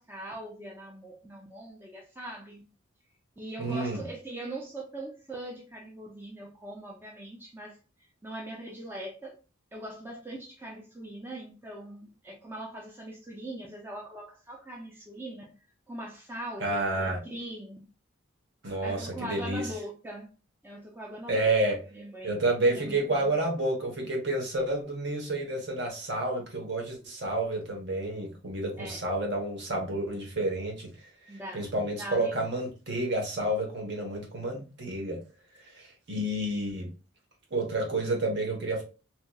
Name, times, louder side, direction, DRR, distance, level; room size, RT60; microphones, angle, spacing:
voice 1, 0.0-2.6 3.4-7.8 8.2-9.4 9.7-15.5 15.9-17.8 18.8-20.3 20.6-23.3 28.8-29.0 31.3-32.3, right 1 dB, 10° right, 0.4 m, -41 dB
voice 2, 3.6-4.0 16.6-17.2 18.6-19.7 21.3-21.8 22.2-30.9 31.5-35.2 35.7-36.9 37.5-38.8, right 2 dB, 55° right, 1.1 m, -30 dB
2.9 x 2.9 x 2.2 m
head